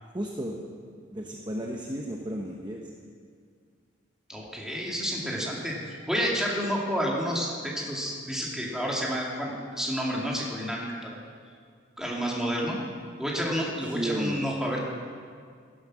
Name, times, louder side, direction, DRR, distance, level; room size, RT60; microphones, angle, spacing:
voice 1, 0.1-0.6 1.1-2.9 13.9-14.4, right 1 dB, 20° right, 0 dB, 1.0 m, -33 dB
voice 2, 4.3-5.8 6.1-11.1 12.0-12.8 13.2-14.8, equal, 5° right, -3 dB, 2.5 m, -30 dB
17.0 x 11.5 x 6.2 m, 2.1 s
head